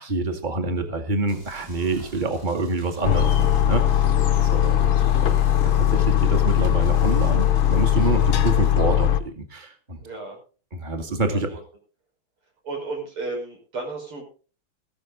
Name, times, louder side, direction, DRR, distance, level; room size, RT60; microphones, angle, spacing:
voice 1, 0.0-4.1 4.5-5.4 5.8-10.0 10.7-11.5, right 2 dB, 20° right, 5 dB, 2.2 m, -27 dB
sound 1, 1.3-8.7, equal, 70° right, 6.0 m, -45 dB
sound 2, 3.0-9.2, left 11 dB, 75° left, 1.9 m, -19 dB
voice 2, 4.3-4.7 10.0-10.4 11.3-11.6 12.6-14.3, right 3 dB, 85° right, 1 dB, 6.2 m, -34 dB
15.0 x 13.0 x 4.0 m, 0.36 s
omnidirectional pair, 2.3 m